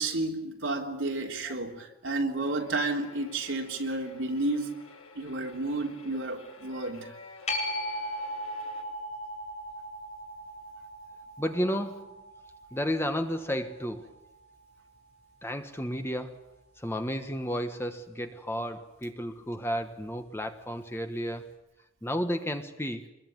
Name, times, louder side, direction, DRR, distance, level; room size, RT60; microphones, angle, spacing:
voice 1, 0.0-4.8 5.2-7.1, right 2 dB, 65° right, 3.5 m, -31 dB
sound 1, 2.4-8.8, left 3 dB, 80° left, 6.6 m, -51 dB
sound 2, 7.5-14.6 20.2-20.3, equal, 30° left, 5.9 m, -38 dB
voice 2, 11.4-12.1 12.7-14.1 15.4-16.3 16.8-21.5 22.0-23.1, equal, 10° left, 1.3 m, -32 dB
25.5 x 21.5 x 9.4 m
head